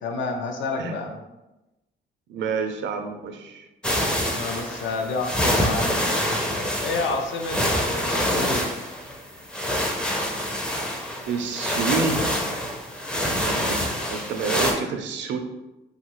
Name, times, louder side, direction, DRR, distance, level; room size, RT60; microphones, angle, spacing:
voice 1, 0.0-1.2 4.3-8.7, left 3 dB, 70° left, 3 dB, 0.6 m, -30 dB
voice 2, 2.3-3.7 11.3-12.6 13.3-15.4, right 5 dB, 70° right, 6 dB, 0.5 m, -29 dB
sound 1, 3.8-14.7, equal, 5° left, 0.4 m, -26 dB
3.0 x 2.4 x 2.9 m, 0.99 s
cardioid pair, 90°, 20 cm